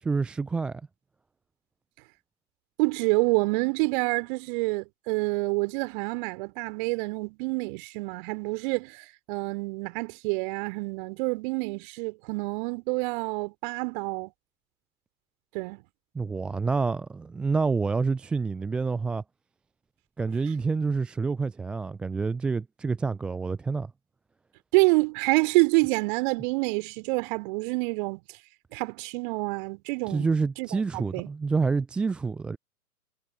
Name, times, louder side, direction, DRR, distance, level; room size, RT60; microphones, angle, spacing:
voice 1, 0.0-0.8 16.1-19.2 20.2-23.9 30.1-32.6, right 4 dB, ahead, 0.5 m, -28 dB
voice 2, 2.8-14.3 15.5-15.8 24.7-28.2 28.7-30.3 30.6-31.3, right 28 dB, 35° right, 3.3 m, -27 dB
figure-of-eight pair, 115°, 45 cm